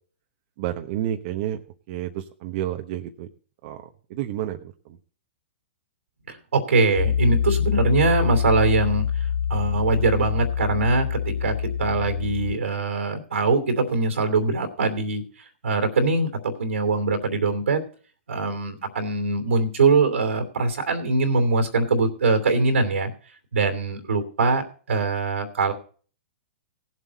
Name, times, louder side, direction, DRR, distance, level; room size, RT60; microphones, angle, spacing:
voice 1, 0.6-1.6 1.9-3.3 3.6-3.8 4.1-4.7, right 12 dB, 50° right, 5 dB, 1.0 m, -30 dB
voice 2, 6.3-9.0 9.5-15.2 15.6-17.8 18.3-23.1 23.5-24.6 24.9-25.7, right 3 dB, 85° right, 6 dB, 2.8 m, -22 dB
Piano, 7.0-12.5, left 8 dB, 70° left, 0.6 m, -25 dB
18.0 x 7.6 x 4.1 m, 0.42 s
hypercardioid pair, 125°, 7 cm